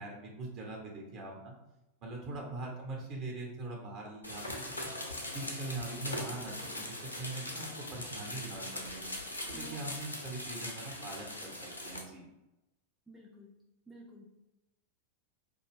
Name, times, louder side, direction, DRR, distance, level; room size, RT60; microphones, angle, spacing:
voice 1, 0.0-1.5 2.0-4.9 5.3-9.1 9.5-12.2, right 2 dB, 40° right, -1 dB, 0.9 m, -42 dB
voice 2, 2.2-2.6 5.9-6.3 9.5-9.9 13.1-13.5 13.9-14.3, right 3 dB, 5° right, -4 dB, 0.4 m, -52 dB
sound 1, 4.2-12.0, left 1 dB, 80° left, 0.5 m, -41 dB
2.5 x 2.1 x 3.4 m, 0.96 s
figure-of-eight pair, 90°, 0 cm